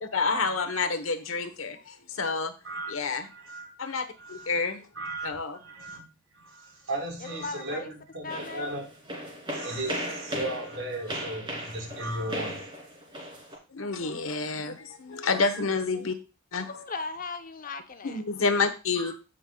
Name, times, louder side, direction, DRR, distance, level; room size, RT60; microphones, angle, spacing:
voice 1, 0.0-2.5 2.9-3.3 3.8-4.8 5.2-5.6 13.7-16.2 16.5-16.7 18.0-19.1, left 4 dB, 80° left, 1.1 m, -29 dB
voice 2, 3.2-3.8 4.2-4.6 4.9-6.1 6.3-8.9 9.5-12.6 19.0-19.1, right 1 dB, 85° right, 4.1 m, -36 dB
voice 3, 7.2-7.9 8.2-8.7 15.2-15.3 16.6-18.7, left 4 dB, 40° left, 0.7 m, -38 dB
sound 1, 8.3-13.6, right 1 dB, 25° right, 2.6 m, -36 dB
16.5 x 5.5 x 2.3 m
head